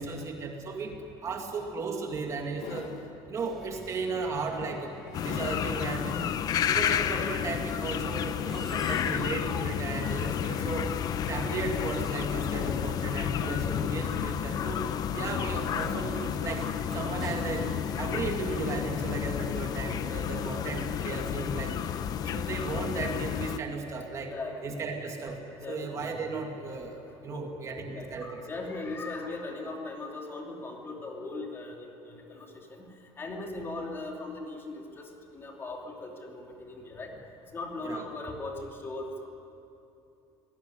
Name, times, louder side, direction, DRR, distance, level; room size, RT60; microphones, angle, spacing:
voice 1, 0.0-2.9 3.3-4.9 5.2-6.2 6.6-10.9 11.3-14.8 15.1-17.7 18.0-21.8 22.2-24.4 24.6-25.4 25.7-28.4 37.8-38.0, right 4 dB, 30° right, 2 dB, 2.2 m, -35 dB
sound 1, 1.4-1.5 2.1-3.2 3.8-4.0 4.6-5.8 6.3-6.4 7.9-8.3 8.7-9.4 10.6-11.5 12.4-13.0 14.4-14.5, left 8 dB, 85° left, 1.9 m, -42 dB
sound 2, 3.3-22.6, equal, ahead, 4.0 m, -46 dB
sound 3, 5.1-23.6, left 9 dB, 35° left, 0.7 m, -31 dB
voice 2, 24.3-24.8 25.6-26.1 27.2-27.4 27.7-32.9 33.2-37.1 37.5-39.3, left 2 dB, 20° left, 1 dB, 2.9 m, -39 dB
25.0 x 18.0 x 9.9 m, 2.8 s
cardioid pair, 175°, 11 cm